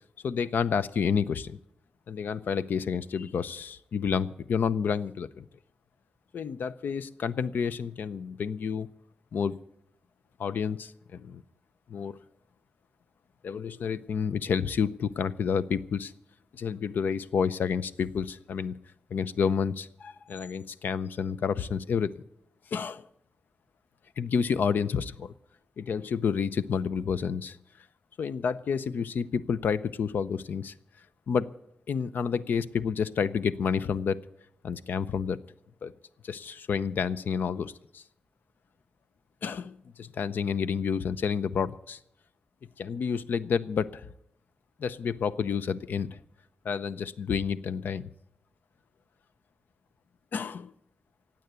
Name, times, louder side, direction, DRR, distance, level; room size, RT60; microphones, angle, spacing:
voice 1, 0.2-1.6 2.1-5.4 6.3-8.9 9.3-9.6 10.4-11.4 11.9-12.2 13.4-16.1 16.5-18.7 19.1-22.2 22.7-23.0 24.2-25.3 25.8-27.6 28.2-30.7 31.3-31.5 31.9-34.2 34.6-35.4 35.8-35.9 36.2-38.0 39.4-42.0 42.8-44.1 44.8-46.2 46.6-48.1 50.3-50.7, left 6 dB, 85° left, 15 dB, 0.6 m, -29 dB
16.0 x 9.1 x 8.2 m, 0.73 s
wide cardioid pair, 150°, 3 cm